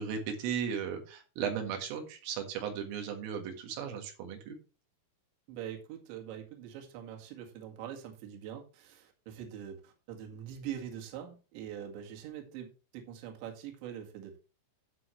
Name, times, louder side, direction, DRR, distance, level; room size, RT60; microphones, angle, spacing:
voice 1, 0.0-4.6, right 7 dB, 90° right, 3 dB, 4.5 m, -36 dB
voice 2, 5.5-14.4, right 9 dB, 65° right, 2 dB, 4.1 m, -43 dB
12.5 x 8.5 x 3.2 m, 0.32 s
omnidirectional pair, 5.7 m